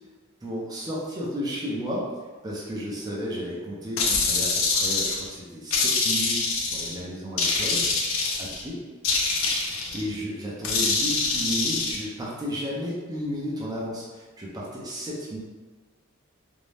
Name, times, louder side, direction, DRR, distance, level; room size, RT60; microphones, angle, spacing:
voice 1, 0.4-2.0 2.4-7.8 8.4-8.7 9.9-15.4, equal, 20° right, -6 dB, 0.5 m, -33 dB
sound 1, 4.0-5.3 5.7-6.9 7.4-8.6 9.0-10.0 10.6-12.0, left 4 dB, 65° left, 0.5 m, -25 dB
2.5 x 2.1 x 3.2 m, 1.4 s
head